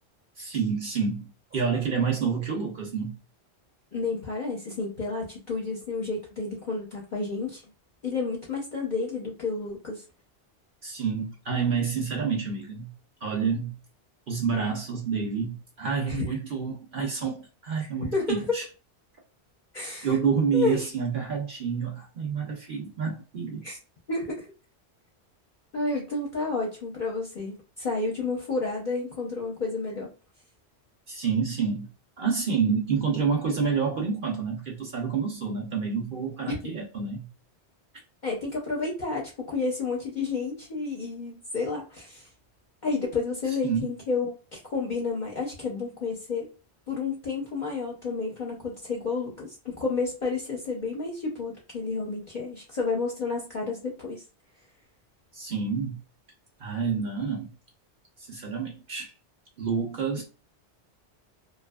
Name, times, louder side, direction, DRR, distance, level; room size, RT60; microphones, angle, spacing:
voice 1, 0.4-3.2 10.8-12.9 13.2-13.7 14.3-18.6 20.0-23.7 31.1-31.9 32.2-37.3 43.6-43.9 55.3-56.0 56.6-57.5 58.2-59.1 59.6-60.2, right 6 dB, 55° right, 0.7 m, -28 dB
voice 2, 3.9-7.6 8.0-10.0 16.1-16.2 18.1-18.6 19.7-20.2 20.5-20.9 23.6-23.8 24.1-24.5 25.7-30.1 36.4-36.7 38.2-42.3 42.8-46.5 46.9-54.2, left 4 dB, 50° left, 0.8 m, -31 dB
2.6 x 2.3 x 2.2 m
omnidirectional pair, 1.1 m